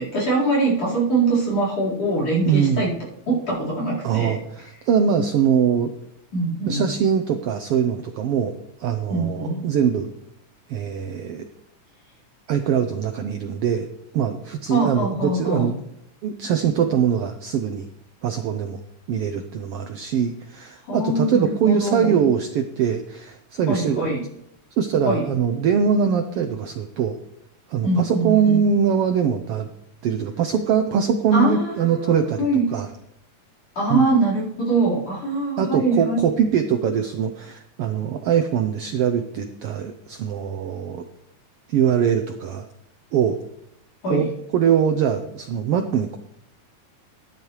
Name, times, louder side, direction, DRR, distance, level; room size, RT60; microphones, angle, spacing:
voice 1, 0.0-2.9 3.3-4.4 6.3-6.9 9.1-9.7 14.7-15.7 20.9-22.2 23.7-24.2 25.0-25.3 27.8-28.6 31.3-32.6 33.8-36.2 44.0-44.3, right 2 dB, 55° left, -4 dB, 5.5 m, -23 dB
voice 2, 2.5-2.9 4.0-5.9 6.7-8.5 8.8-10.1 10.7-11.5 12.5-13.9 14.1-15.8 16.2-17.9 18.2-18.8 19.1-24.0 24.8-27.2 27.7-29.7 30.0-32.5 32.7-32.9 33.9-34.0 35.6-41.0 41.7-42.7 43.1-43.4 44.1-46.2, right 7 dB, 75° right, 7 dB, 1.4 m, -22 dB
13.5 x 10.5 x 3.2 m, 0.76 s
omnidirectional pair, 3.4 m